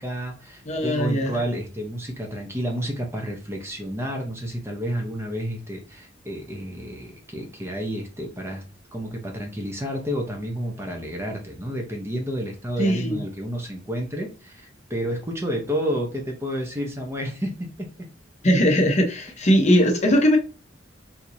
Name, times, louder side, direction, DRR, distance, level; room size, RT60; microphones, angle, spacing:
voice 1, 0.0-8.6 8.9-18.1, equal, 15° right, 1 dB, 0.7 m, -30 dB
voice 2, 0.6-1.4 12.8-13.2 18.4-20.4, equal, 35° left, 2 dB, 0.8 m, -20 dB
4.5 x 2.8 x 2.6 m, 0.32 s
head